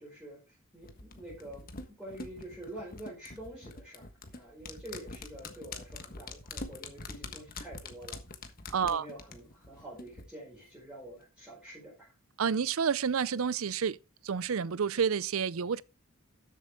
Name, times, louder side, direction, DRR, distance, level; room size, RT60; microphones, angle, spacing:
voice 1, 0.0-8.2 8.9-12.1, right 1 dB, 5° right, 5.1 m, -47 dB
sound 1, 0.8-10.2 10.5-10.6, left 3 dB, 45° left, 1.4 m, -45 dB
voice 2, 8.7-9.1 12.4-14.0 14.2-15.8, right 6 dB, 80° right, 0.5 m, -29 dB
13.0 x 7.7 x 3.7 m
head